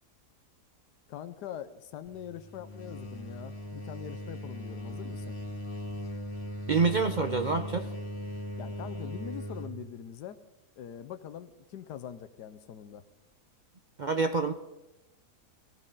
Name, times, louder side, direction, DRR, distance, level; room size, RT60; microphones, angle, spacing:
voice 1, 1.1-5.4 8.6-10.4 10.8-13.0, left 9 dB, 85° left, 10 dB, 1.3 m, -43 dB
sound 1, 2.1-9.8, equal, 40° left, 2.3 m, -39 dB
voice 2, 6.7-7.9 14.0-14.5, right 4 dB, 65° right, 8 dB, 0.4 m, -27 dB
21.0 x 16.5 x 3.8 m, 0.96 s
omnidirectional pair, 1.8 m